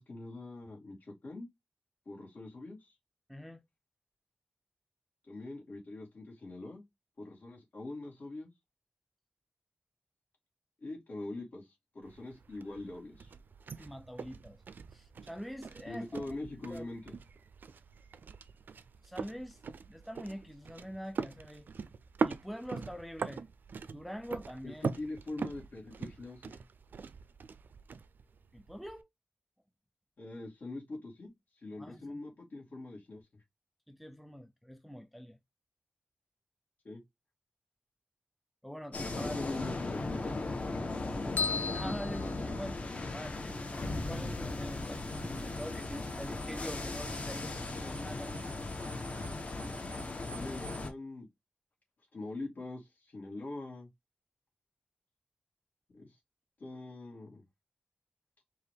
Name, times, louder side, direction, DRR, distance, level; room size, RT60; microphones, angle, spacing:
voice 1, 0.0-1.5 2.1-2.9 5.3-6.8 7.2-8.5 10.8-13.3 15.9-17.1 24.6-26.6 30.2-31.3 31.6-33.2 36.8-37.0 39.2-40.5 50.3-51.3 52.1-53.9 55.9-56.1 56.6-57.4, left 2 dB, 55° left, 2.5 m, -43 dB
voice 2, 3.3-3.6 13.8-14.6 14.9-16.4 16.7-16.9 19.0-19.6 19.9-21.7 22.2-23.4 23.9-24.9 28.5-29.1 31.8-32.2 33.9-35.4 38.6-39.6 41.7-42.8 43.1-43.7 44.0-48.4, equal, ahead, 0.4 m, -44 dB
sound 1, 12.0-29.0, right 5 dB, 65° right, 0.4 m, -42 dB
sound 2, 38.9-50.9, left 2 dB, 40° left, 1.0 m, -37 dB
sound 3, 41.4-43.1, left 5 dB, 75° left, 0.5 m, -36 dB
4.7 x 2.9 x 3.3 m
wide cardioid pair, 150°, 3 cm